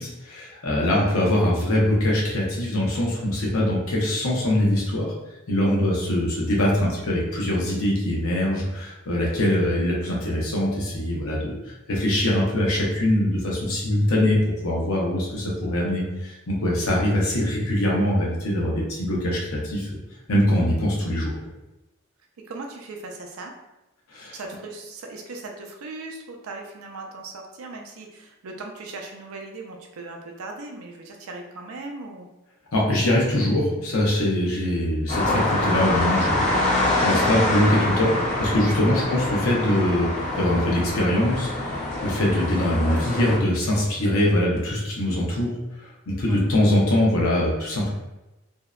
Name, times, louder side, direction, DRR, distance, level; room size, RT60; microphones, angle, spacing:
voice 1, 0.0-5.1 5.5-20.0 20.3-21.3 24.1-24.3 32.7-36.6 37.0-45.5 46.1-47.9, left 1 dB, 80° left, -3 dB, 0.7 m, -23 dB
voice 2, 0.8-1.1 22.5-23.5 24.3-32.3 43.0-43.2 46.3-46.4, right 3 dB, 85° right, 2 dB, 0.4 m, -38 dB
sound 1, 35.1-43.4, left 2 dB, 35° left, 0.5 m, -25 dB
2.6 x 2.0 x 2.3 m, 0.99 s
head